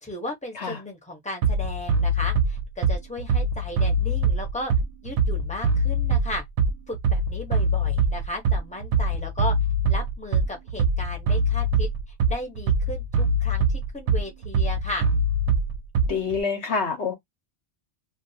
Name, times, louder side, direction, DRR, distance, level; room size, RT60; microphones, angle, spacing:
voice 1, 0.0-4.7 5.0-6.4 6.9-9.5 9.9-11.9 12.3-15.0, left 2 dB, 5° left, 0.8 m, -35 dB
Bass drum, 1.4-16.4, right 2 dB, 75° right, 0.8 m, -23 dB
voice 2, 16.1-17.2, left 5 dB, 70° left, 1.1 m, -26 dB
2.5 x 2.3 x 2.7 m
omnidirectional pair, 1.2 m